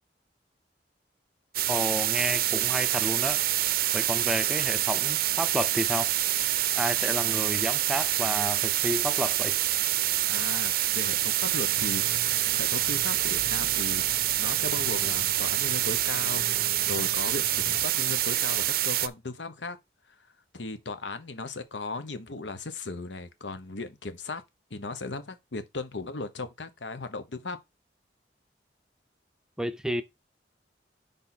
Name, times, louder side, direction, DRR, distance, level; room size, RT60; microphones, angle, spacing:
sound 1, 1.5-19.1, right 14 dB, 55° right, 0.5 m, -26 dB
voice 1, 1.7-3.4 3.9-6.1 6.8-9.6 29.6-30.0, equal, 5° right, 0.5 m, -31 dB
voice 2, 10.3-14.0 14.4-19.8 20.5-24.4 24.7-27.6, left 3 dB, 85° left, 1.1 m, -37 dB
sound 2, 11.5-17.8, equal, 20° left, 2.8 m, -45 dB
10.0 x 3.5 x 4.2 m
head